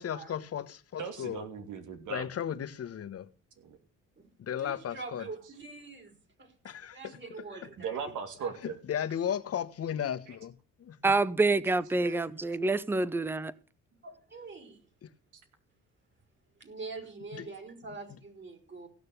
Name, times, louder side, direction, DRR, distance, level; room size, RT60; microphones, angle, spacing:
voice 1, 0.0-1.4 2.1-3.3 4.4-5.2 6.6-7.2 8.6-10.5 10.8-11.0 15.0-15.1 17.3-17.5 18.1-18.2, left 9 dB, 50° left, 1.1 m, -35 dB
voice 2, 1.0-2.3 3.6-3.8 7.8-8.8 10.3-10.4, right 6 dB, 80° right, 2.9 m, -38 dB
voice 3, 4.6-6.5 6.9-8.0 8.4-8.5 12.0-12.3 14.0-14.8 16.6-18.9, right 3 dB, 40° right, 4.0 m, -44 dB
voice 4, 11.0-13.5, right 3 dB, 5° right, 0.6 m, -27 dB
16.0 x 6.7 x 6.7 m
cardioid pair, 90°, 30 cm